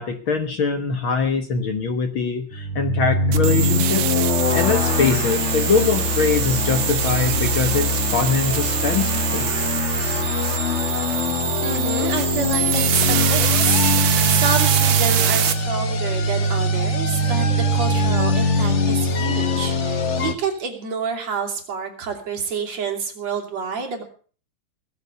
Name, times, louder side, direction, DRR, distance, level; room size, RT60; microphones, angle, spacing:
voice 1, 0.0-4.2 4.5-9.5, left 5 dB, 55° left, 7 dB, 1.8 m, -23 dB
sound 1, 2.5-20.3, left 1 dB, 80° left, 0.6 m, -22 dB
sound 2, 3.3-15.5, right 10 dB, 90° right, 2.6 m, -24 dB
voice 2, 11.6-24.0, right 5 dB, 60° right, 3 dB, 4.1 m, -28 dB
20.0 x 7.2 x 8.1 m, 0.43 s
omnidirectional pair, 3.4 m